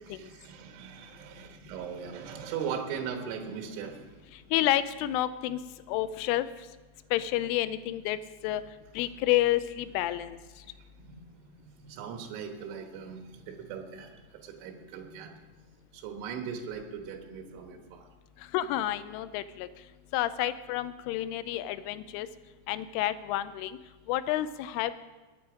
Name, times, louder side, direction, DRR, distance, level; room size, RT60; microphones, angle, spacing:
voice 1, 0.0-4.1 10.7-10.8 11.1-11.2 11.6-15.4 15.9-18.1, right 7 dB, 80° right, 3 dB, 3.7 m, -39 dB
voice 2, 4.5-5.6 5.9-6.5 7.1-8.2 8.4-8.6 9.0-10.4 18.5-19.7 20.1-22.3 22.7-23.7 24.1-24.9, left 14 dB, 85° left, 13 dB, 3.1 m, -29 dB
22.0 x 8.7 x 4.9 m, 1.2 s
omnidirectional pair, 5.6 m